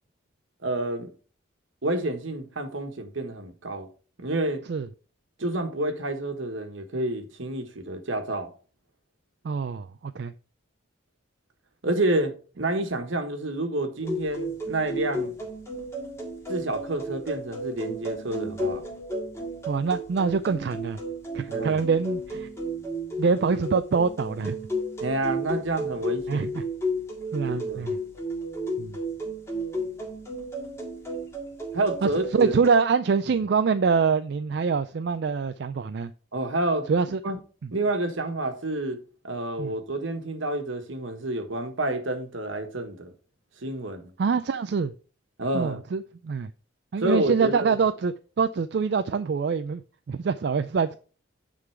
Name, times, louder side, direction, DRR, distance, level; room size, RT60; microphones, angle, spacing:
voice 1, 0.6-1.1 1.8-3.9 4.2-4.6 5.4-8.5 11.8-15.3 16.5-18.8 21.5-21.8 25.0-26.5 27.5-27.9 31.7-32.6 36.3-36.9 37.2-37.4 37.7-39.0 39.2-43.1 43.6-44.1 45.4-45.8 47.0-47.8, right 1 dB, 75° right, 1.4 m, -29 dB
voice 2, 9.4-10.3 19.7-21.0 21.3-22.5 23.2-24.6 26.3-26.6 27.3-28.0 28.8-29.0 32.0-36.1 36.9-37.2 39.6-39.7 44.2-44.9 45.5-46.5 46.9-49.8 50.1-51.0, right 5 dB, 55° right, 0.4 m, -25 dB
sound 1, 14.0-32.7, right 1 dB, 15° left, 1.8 m, -33 dB
9.7 x 3.9 x 4.6 m
head